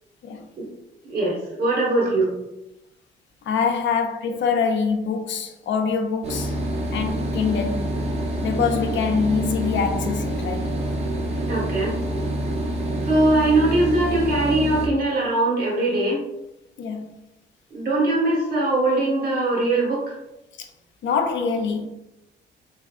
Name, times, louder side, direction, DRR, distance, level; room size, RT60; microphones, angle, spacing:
voice 1, 1.1-2.3 11.5-11.9 13.1-16.2 17.7-20.1, right 2 dB, 50° right, 1.4 m, -21 dB
voice 2, 3.5-6.5 6.9-8.0 8.4-10.8 16.8-17.1 20.6-20.7 21.0-21.9, left 5 dB, 70° left, 0.6 m, -24 dB
sound 1, 6.2-14.9, right 1 dB, 30° right, 0.8 m, -27 dB
3.4 x 3.3 x 2.4 m
cardioid pair, 90°, 20 cm